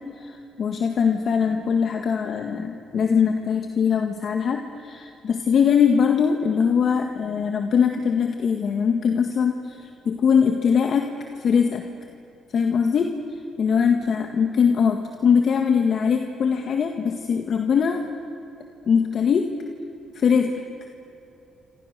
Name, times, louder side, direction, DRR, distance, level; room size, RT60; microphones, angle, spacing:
voice 1, 0.2-11.1 11.3-11.8 12.5-13.1 13.6-18.0 18.9-19.4 20.1-20.6, left 6 dB, 55° left, 4 dB, 1.8 m, -21 dB
27.0 x 27.0 x 6.8 m, 2.9 s
cardioid pair, 90°, 0 cm